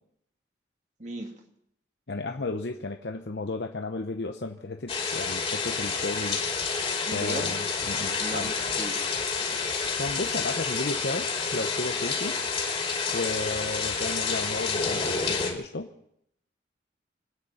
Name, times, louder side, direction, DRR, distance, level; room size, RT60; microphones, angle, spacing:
voice 1, 1.0-1.3 7.1-7.6 8.2-9.1, right 1 dB, 40° right, 3 dB, 2.2 m, -36 dB
voice 2, 2.1-6.4 7.1-8.5 10.0-12.4 13.1-15.9, left 3 dB, 70° left, 4 dB, 0.8 m, -33 dB
sound 1, 4.9-15.5, left 5 dB, 35° left, 2.7 m, -29 dB
sound 2, 6.6-10.4, equal, 65° right, 6.6 m, -52 dB
26.0 x 9.5 x 5.7 m, 0.76 s
head